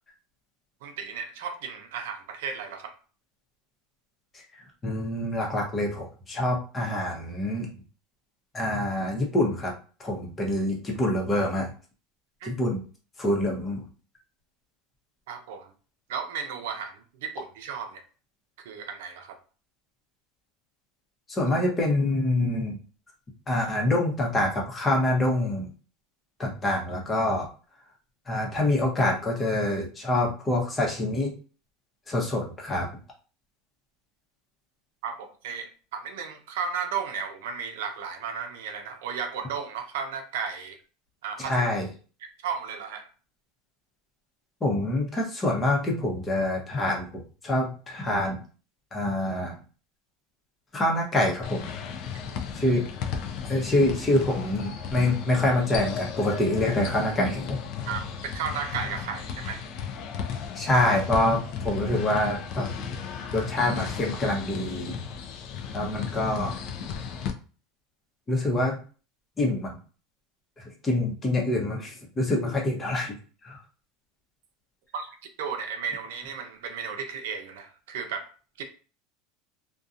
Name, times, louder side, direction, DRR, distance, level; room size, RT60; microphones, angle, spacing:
voice 1, 0.8-2.9 12.4-12.5 15.3-15.7 16.1-18.0 18.6-19.4 35.0-40.8 41.2-41.6 42.4-43.1 57.9-59.6 74.9-75.1 75.4-78.3 78.6-78.7, right 6 dB, 85° right, 6 dB, 0.5 m, -34 dB
voice 2, 4.8-7.7 8.5-9.7 10.0-11.7 12.4-12.8 13.2-13.8 21.3-22.8 23.5-25.7 26.4-27.5 28.3-31.3 32.1-32.9 41.4-41.9 44.6-48.4 48.9-49.5 50.7-51.7 52.5-52.9 53.4-57.6 60.5-62.8 63.3-64.9 65.7-66.6 68.3-68.8 69.4-69.8 70.6-73.2 73.4-73.6, left 1 dB, 20° left, -1 dB, 0.7 m, -26 dB
sound 1, 51.4-67.3, left 7 dB, 55° left, 0.4 m, -35 dB
2.7 x 2.2 x 2.4 m, 0.37 s
supercardioid pair, 150°, 0 cm